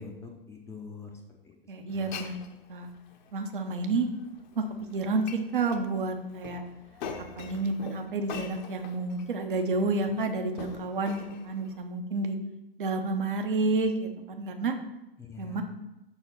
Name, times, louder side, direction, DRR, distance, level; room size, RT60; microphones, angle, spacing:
voice 1, 0.0-1.6 1.9-2.3 15.2-15.6, left 4 dB, 10° left, 1 dB, 0.5 m, -44 dB
voice 2, 1.7-2.4 2.7-2.9 3.3-4.1 4.6-4.7 4.9-6.6 7.4-12.4 12.8-14.8 15.4-15.6, right 3 dB, 60° right, 5 dB, 1.0 m, -30 dB
Glass, 1.9-11.8, left 6 dB, 50° left, 0.8 m, -45 dB
5.9 x 4.3 x 5.7 m, 0.95 s
figure-of-eight pair, 105°, 29 cm